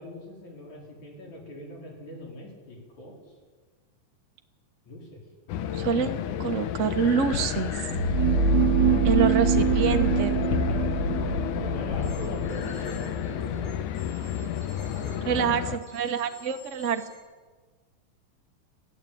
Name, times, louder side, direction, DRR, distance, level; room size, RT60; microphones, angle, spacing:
voice 1, 0.0-3.3 4.9-5.2 11.3-13.8 14.9-15.5, left 1 dB, 65° left, -1 dB, 6.2 m, -42 dB
sound 1, 5.5-15.8, left 9 dB, 85° left, 2.5 m, -31 dB
voice 2, 5.7-7.7 9.0-10.4 15.3-17.0, right 6 dB, 60° right, 6 dB, 0.7 m, -26 dB
sound 2, 7.7-13.7, right 5 dB, 40° right, 3.2 m, -25 dB
sound 3, 12.0-15.2 15.8-17.2, left 2 dB, 45° left, 7.1 m, -51 dB
23.5 x 15.0 x 8.7 m, 1.4 s
omnidirectional pair, 3.5 m